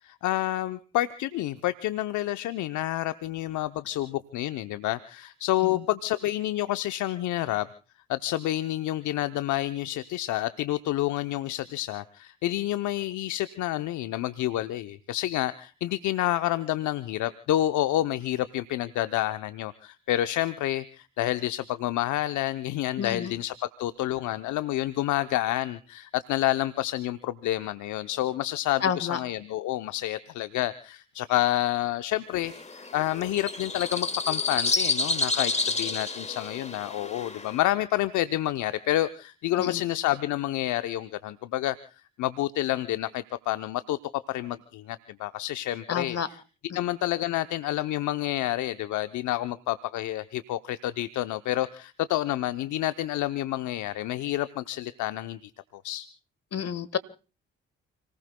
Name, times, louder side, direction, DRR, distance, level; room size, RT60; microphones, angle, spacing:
voice 1, 0.0-7.7 8.1-41.8 42.2-44.0 44.3-46.4 46.7-56.1, left 14 dB, 70° left, 11 dB, 0.8 m, -29 dB
voice 2, 23.0-23.3 28.8-29.2 39.6-39.8 45.9-46.3 56.5-57.0, left 7 dB, 55° left, 14 dB, 1.6 m, -29 dB
sound 1, 32.4-37.6, left 3 dB, 20° left, 1.7 m, -30 dB
30.0 x 19.0 x 2.2 m, 0.36 s
hypercardioid pair, 45°, 31 cm